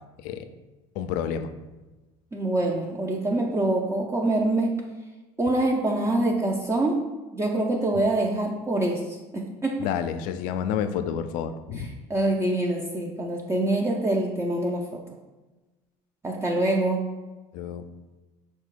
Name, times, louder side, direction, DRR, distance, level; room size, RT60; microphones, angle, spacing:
voice 1, 1.0-1.5 9.8-12.0 17.5-17.8, left 8 dB, 70° left, 10 dB, 0.4 m, -29 dB
voice 2, 2.3-4.8 5.4-9.9 12.1-15.0 16.2-17.1, right 2 dB, 20° right, 0 dB, 0.5 m, -25 dB
4.8 x 2.3 x 4.5 m, 1.2 s
supercardioid pair, 90°, 14 cm